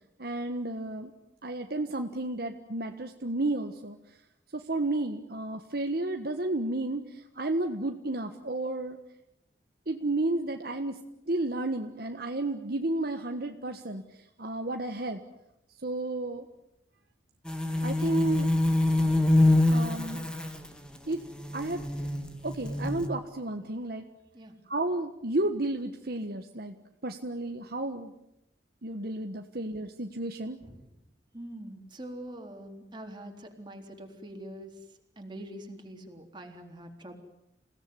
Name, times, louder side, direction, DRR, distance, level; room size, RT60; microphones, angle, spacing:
voice 1, 0.2-1.1 1.4-4.0 4.5-7.0 7.3-9.0 9.9-11.0 11.3-14.0 14.4-15.2 15.8-16.4 17.8-18.5 19.7-20.2 21.1-21.2 21.5-21.8 22.4-24.0 24.7-26.7 27.0-28.1 28.8-30.6, right 2 dB, 60° right, 5 dB, 1.5 m, -32 dB
sound 1, 17.5-23.1, left 2 dB, 5° left, 2.1 m, -26 dB
voice 2, 31.3-34.7 35.2-37.1, right 1 dB, 25° right, 3 dB, 3.8 m, -44 dB
28.5 x 17.5 x 9.6 m, 0.86 s
head